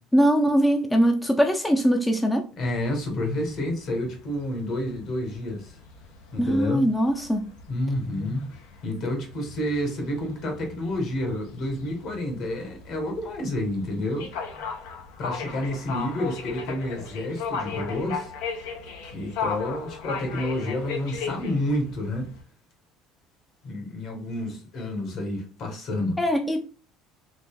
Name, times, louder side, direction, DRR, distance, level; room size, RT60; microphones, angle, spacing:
voice 1, 0.1-2.5 6.4-7.5 26.2-26.7, equal, 10° left, 0.5 m, -21 dB
sound 1, 2.6-22.4, left 5 dB, 85° left, 0.8 m, -37 dB
voice 2, 2.6-5.8 6.3-6.8 7.7-8.5 8.8-14.6 15.2-18.3 19.1-22.3 23.6-26.2, left 1 dB, 60° left, 1.4 m, -29 dB
4.0 x 2.9 x 2.2 m
supercardioid pair, 105°, 0 cm